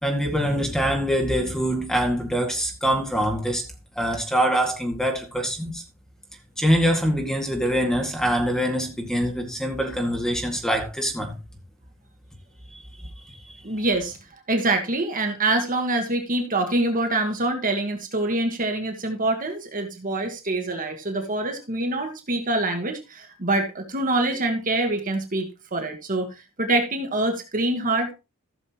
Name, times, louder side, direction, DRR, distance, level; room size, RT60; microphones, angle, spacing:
voice 1, 0.0-3.6 4.0-5.8 6.6-11.4 12.7-13.5, equal, 5° left, 2.1 m, -24 dB
voice 2, 13.6-14.2 14.5-28.1, right 2 dB, 40° right, 1.5 m, -25 dB
15.5 x 6.5 x 3.0 m
head